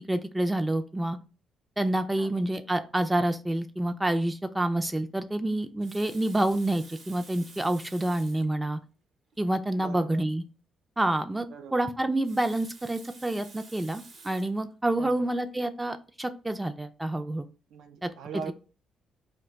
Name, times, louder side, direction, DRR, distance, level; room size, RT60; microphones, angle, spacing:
voice 1, 0.1-1.2 1.8-8.8 9.4-10.4 11.0-17.5 18.0-18.1, right 1 dB, 15° right, 8 dB, 0.3 m, -28 dB
Water tap faucet, 5.6-8.5 9.3-9.4 9.7-9.8 12.0-14.6 15.3-15.5, right 3 dB, 55° right, 0.7 m, -51 dB
voice 2, 9.8-10.2 11.5-11.8 15.0-15.3 17.7-18.5, right 6 dB, 85° right, 8 dB, 0.4 m, -41 dB
2.2 x 2.2 x 3.9 m, 0.34 s
cardioid pair, 80°, 0 cm